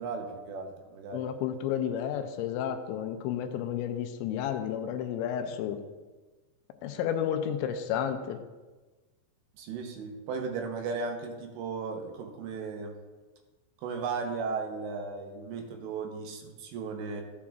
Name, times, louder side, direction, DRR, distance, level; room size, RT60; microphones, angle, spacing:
voice 1, 0.0-1.2 9.6-12.9 13.8-17.2, right 4 dB, 80° right, 3 dB, 3.1 m, -36 dB
voice 2, 1.1-5.8 6.8-8.4, left 9 dB, 85° left, 6 dB, 2.9 m, -31 dB
13.5 x 8.4 x 2.5 m, 1.2 s
omnidirectional pair, 5.3 m